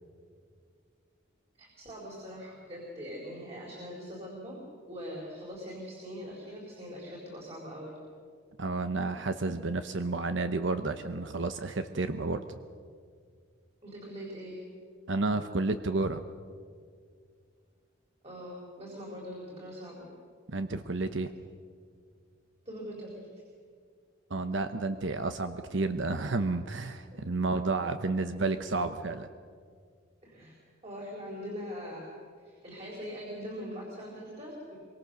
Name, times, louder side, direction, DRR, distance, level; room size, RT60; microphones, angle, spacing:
voice 1, 1.6-4.6 4.9-8.0 13.8-14.6 18.2-20.1 22.7-23.3 30.2-30.6 30.8-32.1 32.4-34.8, equal, 30° right, -3 dB, 4.2 m, -42 dB
voice 2, 8.6-12.6 15.1-16.2 20.5-21.3 24.3-29.3, right 3 dB, 60° right, 9 dB, 0.9 m, -31 dB
25.0 x 23.5 x 6.7 m, 2.1 s
head